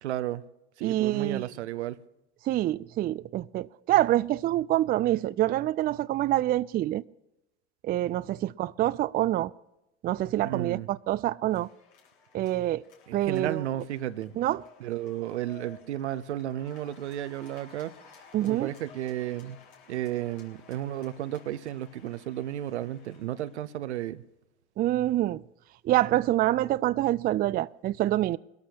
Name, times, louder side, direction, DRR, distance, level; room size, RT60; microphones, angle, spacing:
voice 1, 0.0-0.4 0.8-2.0 10.4-10.9 13.1-14.3 14.8-17.9 18.4-19.6 19.9-24.2, right 12 dB, 85° right, 0.8 m, -33 dB
voice 2, 0.8-1.5 2.4-7.0 7.8-9.5 10.0-11.7 12.3-12.8 13.1-13.6 14.4-14.6 18.3-18.7 24.8-25.4 25.8-28.4, right 14 dB, 30° right, 0.4 m, -26 dB
sound 1, 11.5-23.9, left 6 dB, 75° left, 3.3 m, -55 dB
21.5 x 13.5 x 2.9 m
hypercardioid pair, 85°, 33 cm